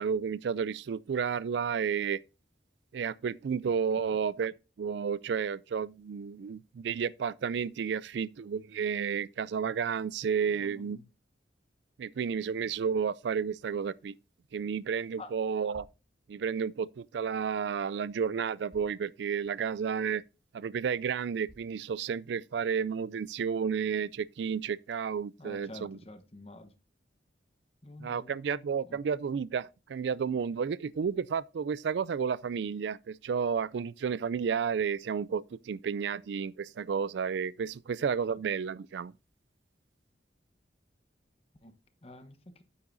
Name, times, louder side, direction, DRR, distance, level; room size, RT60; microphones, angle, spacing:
voice 1, 0.0-2.2 2.9-11.0 12.0-14.1 14.5-15.9 16.3-20.2 20.5-26.0 28.0-39.1, right 6 dB, 70° right, 0.3 m, -32 dB
voice 2, 10.5-11.0 15.2-15.3 25.4-26.7 27.8-28.4 28.9-29.0 41.6-41.8 42.0-42.6, left 1 dB, 30° left, 1.0 m, -48 dB
sound 1, 15.7-16.1 17.6-17.7 18.7-19.1 19.6-19.7 20.3-20.4 21.5-21.8, equal, ahead, 2.0 m, -57 dB
9.5 x 8.5 x 2.6 m
head